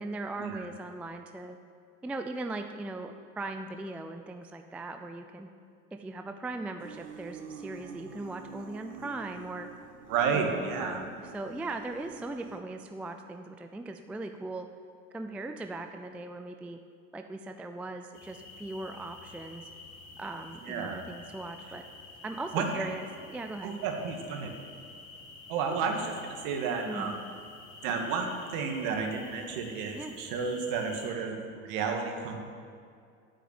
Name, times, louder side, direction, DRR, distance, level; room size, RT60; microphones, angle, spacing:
voice 1, 0.0-1.6 2.0-5.5 5.9-9.7 10.3-14.7 15.1-16.8 17.1-19.7 20.2-21.8 22.2-23.8 26.9-27.1 29.9-30.2, right 2 dB, 5° right, 6 dB, 0.4 m, -39 dB
sound 1, 6.8-12.6, right 6 dB, 75° right, 1.4 m, -47 dB
voice 2, 10.1-11.0 20.6-21.0 22.5-22.9 23.6-24.5 25.5-27.2 27.8-32.4, right 5 dB, 50° right, 2 dB, 2.3 m, -31 dB
sound 2, 18.1-31.1, left 3 dB, 40° left, 3.6 m, -49 dB
9.1 x 8.3 x 9.4 m, 2.3 s
hypercardioid pair, 85°, 42 cm